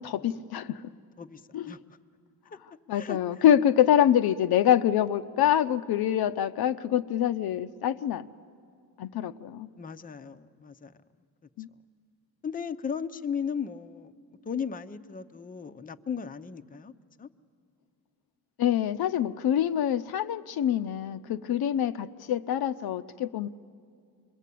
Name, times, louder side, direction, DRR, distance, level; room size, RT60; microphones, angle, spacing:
voice 1, 0.0-0.8 1.5-1.7 2.9-8.3 9.0-9.7 11.6-11.7 18.6-23.5, left 10 dB, 70° left, 11 dB, 0.7 m, -25 dB
voice 2, 1.2-2.0 2.9-3.4 9.8-10.9 12.4-14.1 14.4-16.9 17.2-17.3, left 6 dB, 20° left, 10 dB, 0.6 m, -36 dB
27.5 x 22.5 x 8.4 m, 2.3 s
cardioid pair, 120°, 38 cm